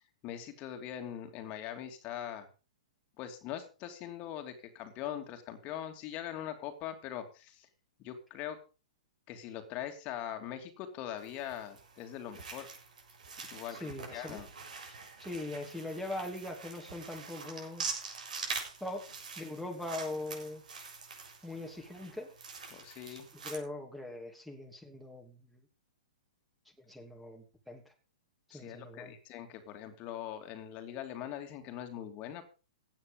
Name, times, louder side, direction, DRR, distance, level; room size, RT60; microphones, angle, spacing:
voice 1, 0.0-2.5 3.2-7.7 8.0-8.6 9.3-12.7 13.5-14.5 14.8-15.0 22.7-23.3 28.5-32.4, left 10 dB, 35° left, 6 dB, 2.8 m, -42 dB
sound 1, 11.2-23.6, right 5 dB, 75° right, 7.1 m, -44 dB
voice 2, 13.7-14.4 15.2-17.9 18.8-19.1 19.4-20.6 21.4-22.3 23.1-25.6 26.9-27.9 28.5-29.2, left 2 dB, ahead, 4 dB, 2.9 m, -41 dB
16.5 x 9.5 x 5.3 m, 0.34 s
hypercardioid pair, 125°, 4 cm